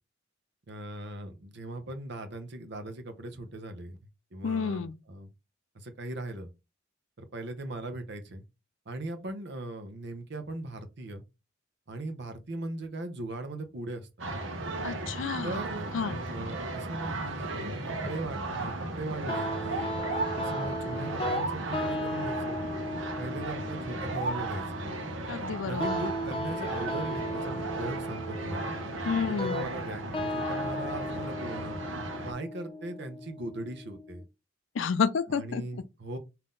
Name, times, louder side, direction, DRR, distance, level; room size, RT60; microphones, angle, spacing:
voice 1, 0.7-4.0 4.3-5.3 5.7-6.5 7.2-8.4 8.9-11.2 11.9-14.1 15.4-19.9 20.4-22.6 23.2-24.8 25.6-28.7 29.3-31.8 32.2-34.2 35.3-36.2, right 2 dB, 65° right, 0.8 m, -39 dB
voice 2, 4.4-5.0 14.8-15.6 15.9-16.2 25.3-26.0 29.0-29.7 34.7-35.6, left 5 dB, 90° left, 0.4 m, -30 dB
sound 1, 14.2-32.3, right 2 dB, 90° right, 1.0 m, -35 dB
sound 2, 19.3-34.2, equal, 30° left, 0.6 m, -36 dB
3.7 x 2.8 x 3.8 m
head